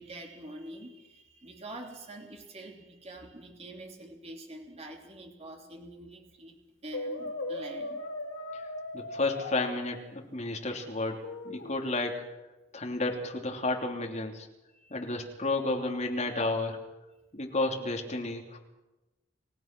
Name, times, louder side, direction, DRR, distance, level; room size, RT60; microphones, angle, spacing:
voice 1, 0.0-8.0 14.7-15.0, right 1 dB, 30° right, 2 dB, 3.2 m, -46 dB
Brass instrument, 6.9-9.7 11.2-11.8, left 2 dB, 75° left, 2.6 m, -37 dB
voice 2, 8.9-12.2 12.7-14.5 14.9-16.8 17.3-18.6, left 2 dB, 35° left, 2 dB, 3.0 m, -32 dB
29.5 x 16.5 x 6.1 m, 1.0 s
head